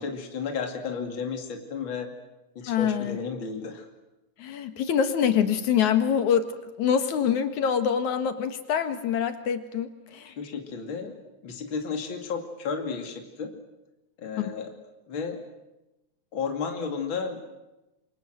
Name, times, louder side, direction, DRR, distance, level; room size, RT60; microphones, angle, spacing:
voice 1, 0.0-2.1 2.5-3.9 10.2-11.2 11.4-13.5 14.2-14.7 15.1-15.4 16.3-17.4, left 5 dB, 45° left, 4 dB, 3.2 m, -33 dB
voice 2, 2.7-3.2 4.4-6.5 6.8-10.3 14.4-14.5, left 8 dB, 80° left, 9 dB, 3.1 m, -25 dB
28.0 x 25.0 x 7.8 m, 0.99 s
omnidirectional pair, 3.4 m